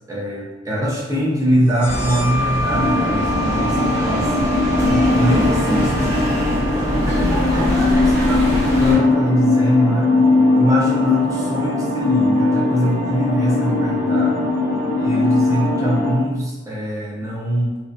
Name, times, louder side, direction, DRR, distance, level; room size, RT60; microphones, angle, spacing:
voice 1, 0.1-4.3 4.8-6.1 6.9-10.1 10.5-14.5 15.0-17.8, equal, 15° right, -5 dB, 0.5 m, -22 dB
sound 1, 1.7-9.0, equal, 75° left, 0.5 m, -30 dB
sound 2, 1.8-9.0, equal, 65° right, 0.8 m, -24 dB
sound 3, 2.7-16.1, left 2 dB, 30° left, 0.6 m, -19 dB
2.7 x 2.2 x 2.4 m, 1.2 s
head